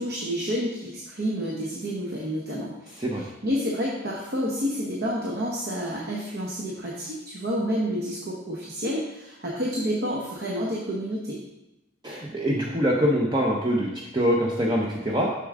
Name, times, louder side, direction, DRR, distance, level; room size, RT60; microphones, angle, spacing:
voice 1, 0.0-3.0 3.4-11.4, equal, 55° right, -3 dB, 1.0 m, -29 dB
voice 2, 12.0-15.3, equal, 20° right, -2 dB, 0.7 m, -24 dB
6.7 x 6.2 x 3.6 m, 0.96 s
head